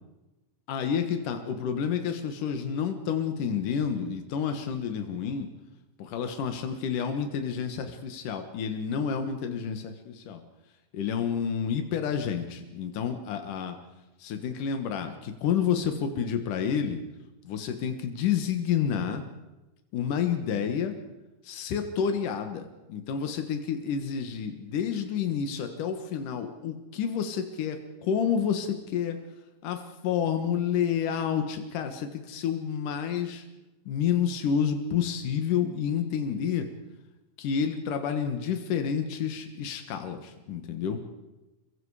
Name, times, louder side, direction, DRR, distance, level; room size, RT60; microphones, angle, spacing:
voice 1, 0.7-5.5 6.0-10.4 10.9-13.8 14.2-17.0 17.4-19.2 19.9-20.9 21.4-29.2 29.6-33.4 33.9-36.7 37.4-41.0, left 7 dB, 80° left, 6 dB, 3.1 m, -29 dB
29.0 x 23.0 x 4.9 m, 1.0 s
omnidirectional pair, 3.6 m